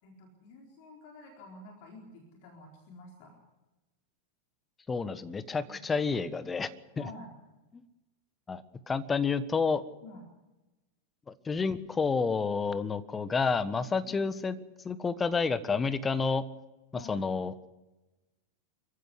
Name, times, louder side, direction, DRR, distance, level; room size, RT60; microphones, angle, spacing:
voice 1, 0.0-3.4 5.6-5.8 6.9-7.3 10.0-10.2 14.0-14.1 16.9-17.2, left 2 dB, 45° left, 2 dB, 4.3 m, -49 dB
voice 2, 4.9-6.7 7.7-7.8 8.5-9.8 11.3-14.6 14.8-16.4 16.9-17.5, left 5 dB, 15° left, 14 dB, 1.4 m, -29 dB
26.5 x 15.0 x 8.2 m, 1.0 s
figure-of-eight pair, 90°, 0 cm